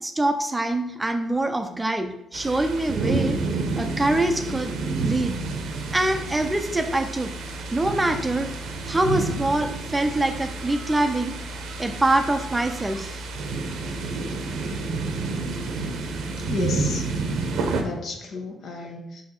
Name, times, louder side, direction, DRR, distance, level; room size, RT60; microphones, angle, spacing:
voice 1, 0.0-3.4 3.8-5.4 5.9-7.4 7.7-8.5 8.9-13.2, right 2 dB, 15° right, 7 dB, 0.5 m, -24 dB
sound 1, 2.3-17.8, right 3 dB, 80° right, 0.8 m, -30 dB
voice 2, 16.5-17.1 17.8-19.2, left 4 dB, 65° left, 3 dB, 1.1 m, -32 dB
5.3 x 4.1 x 4.2 m, 0.83 s
cardioid pair, 90°, 0 cm